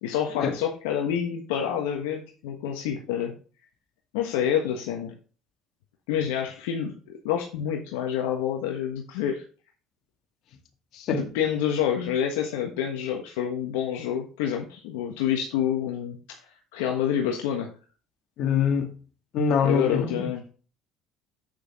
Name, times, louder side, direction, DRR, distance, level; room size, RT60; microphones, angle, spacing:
voice 1, 0.0-3.4 4.1-5.1 6.1-9.4 11.1-16.4 16.7-17.7 19.6-20.4, left 9 dB, 85° left, 1.3 m, -28 dB
voice 2, 10.9-11.3 18.4-18.9 19.3-20.3, left 6 dB, 65° left, 2.0 m, -24 dB
8.2 x 6.5 x 3.6 m
supercardioid pair, 75°, 0 cm